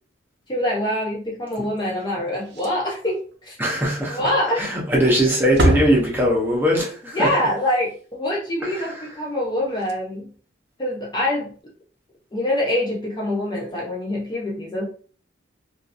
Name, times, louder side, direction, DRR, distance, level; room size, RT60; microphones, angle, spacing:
voice 1, 0.5-3.6 4.1-4.6 7.1-10.3 10.8-11.7 12.3-14.9, left 1 dB, 20° left, 0.4 m, -25 dB
Slam, 2.4-3.0 3.3-3.4 3.9-4.0 4.8-5.1 5.4-6.7 9.4-9.5 9.7-9.9 11.4-11.6, equal, 55° right, 0.5 m, -25 dB
voice 2, 3.6-7.3 8.6-9.1, equal, 10° right, 0.7 m, -21 dB
2.7 x 2.4 x 2.5 m
head